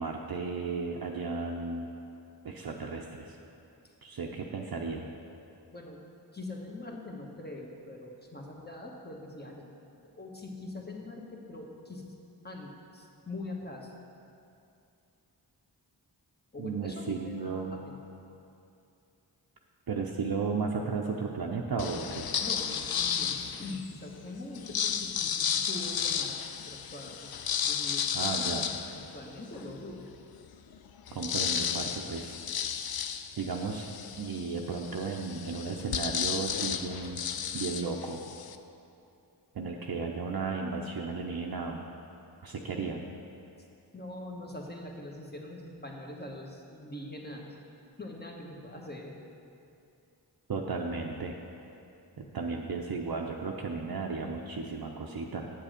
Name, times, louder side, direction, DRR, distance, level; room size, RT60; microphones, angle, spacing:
voice 1, 0.0-1.9 2.4-3.4 4.0-5.1 16.6-17.7 19.9-22.3 28.1-28.7 31.1-32.4 33.4-37.2 37.5-38.2 39.5-41.8 42.4-43.0 50.5-51.3 52.2-55.5, right 4 dB, 55° right, 0 dB, 0.7 m, -34 dB
voice 2, 5.7-6.0 6.3-9.7 10.2-12.1 12.4-13.9 16.5-18.0 22.4-26.4 26.7-28.5 28.9-30.1 43.9-47.6 48.0-49.2, left 2 dB, 25° left, -1 dB, 1.4 m, -43 dB
sound 1, 21.8-23.9 24.5-29.7 30.2-30.3 30.5-38.6, left 8 dB, 60° left, 0.5 m, -33 dB
7.6 x 7.3 x 5.1 m, 2.6 s
cardioid pair, 40°, 42 cm